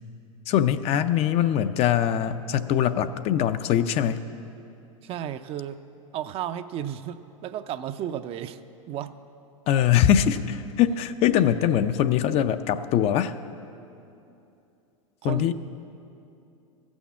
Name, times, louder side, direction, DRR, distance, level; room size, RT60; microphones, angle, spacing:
voice 1, 0.5-4.2 9.7-13.3 15.2-15.5, left 10 dB, 35° left, 11 dB, 0.5 m, -22 dB
voice 2, 5.0-5.8 6.1-8.6 8.9-9.1 11.3-11.4 15.2-15.5, right 10 dB, 35° right, 11 dB, 0.5 m, -33 dB
14.0 x 6.3 x 8.3 m, 2.7 s
hypercardioid pair, 100°, 17 cm